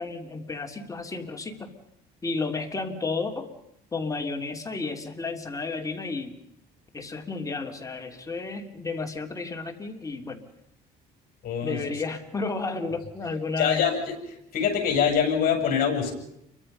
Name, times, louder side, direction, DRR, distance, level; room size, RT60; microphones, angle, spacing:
voice 1, 0.0-1.7 2.2-3.5 3.9-6.4 6.9-10.4 11.6-13.8, left 3 dB, 20° left, 4 dB, 3.0 m, -32 dB
voice 2, 11.4-11.8 13.6-14.0 14.5-16.1, left 7 dB, 60° left, 3 dB, 7.4 m, -24 dB
29.0 x 23.5 x 5.5 m, 0.77 s
cardioid pair, 110°, 17 cm